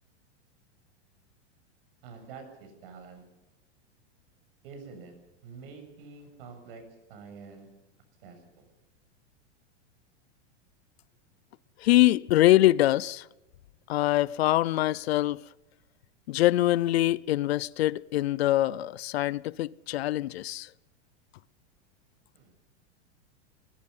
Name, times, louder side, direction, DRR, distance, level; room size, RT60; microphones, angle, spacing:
voice 1, 2.0-3.2 4.6-5.1 5.4-6.8 7.1-7.7 8.2-8.7 22.3-22.5, right 5 dB, 50° right, 7.5 m, -47 dB
voice 2, 11.8-13.3 13.9-15.5 16.3-20.7, left 15 dB, 60° left, 0.7 m, -24 dB
22.0 x 21.5 x 5.6 m
supercardioid pair, 175°, 35 cm